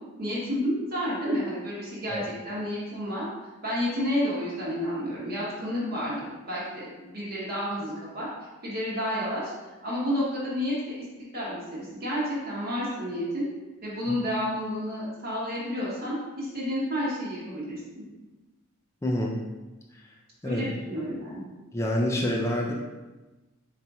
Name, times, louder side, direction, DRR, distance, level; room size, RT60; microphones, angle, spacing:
voice 1, 0.2-3.2 3.6-8.3 8.6-9.5 9.8-11.0 11.3-13.4 13.8-18.0 20.4-21.4, equal, 45° right, -8 dB, 1.0 m, -30 dB
voice 2, 19.0-19.4 20.4-20.6 21.7-22.7, left 1 dB, 15° left, -2 dB, 0.3 m, -27 dB
4.2 x 4.1 x 2.3 m, 1.1 s
head